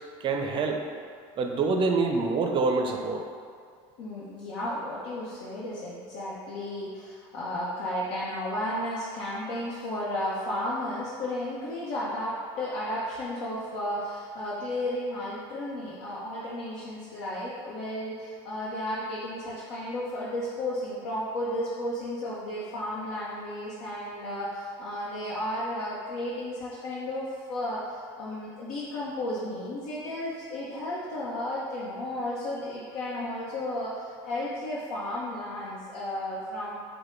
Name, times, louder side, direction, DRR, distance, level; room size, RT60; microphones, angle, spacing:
voice 1, 0.2-0.8 1.4-3.3, right 4 dB, 40° right, 3 dB, 0.5 m, -26 dB
voice 2, 4.0-36.7, left 1 dB, 80° left, -8 dB, 0.8 m, -33 dB
4.9 x 2.2 x 4.4 m, 2.2 s
supercardioid pair, 115°, 14 cm